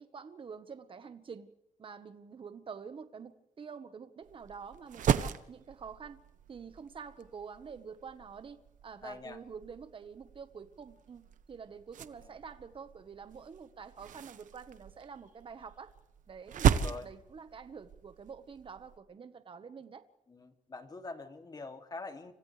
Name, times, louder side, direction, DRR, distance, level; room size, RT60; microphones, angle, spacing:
voice 1, 0.0-1.5 1.8-6.2 6.5-15.9 16.3-20.0, right 6 dB, 40° right, 10 dB, 1.3 m, -47 dB
sound 1, 4.2-19.0, right 9 dB, 85° right, 1.1 m, -36 dB
voice 2, 9.0-9.4 12.2-12.3 16.8-17.1 20.3-22.3, left 3 dB, 30° left, 5 dB, 2.7 m, -44 dB
30.0 x 27.0 x 3.4 m, 0.84 s
wide cardioid pair, 125°, 13 cm